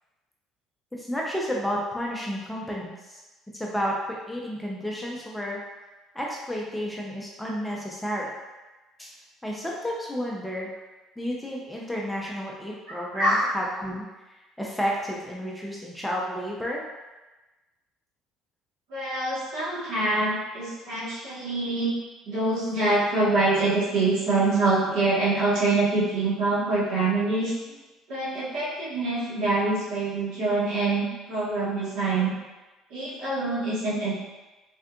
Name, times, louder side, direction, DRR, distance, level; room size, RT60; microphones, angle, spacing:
voice 1, 0.9-3.2 3.5-5.6 6.1-8.3 9.0-9.1 9.4-10.7 11.2-14.0 14.6-16.8, equal, 5° left, -3 dB, 0.5 m, -31 dB
voice 2, 12.9-13.5 18.9-21.9 22.2-27.5 28.1-32.3 32.9-34.1, right 2 dB, 70° right, -8 dB, 1.3 m, -25 dB
3.6 x 2.4 x 2.3 m, 1.1 s
cardioid pair, 105°, 0 cm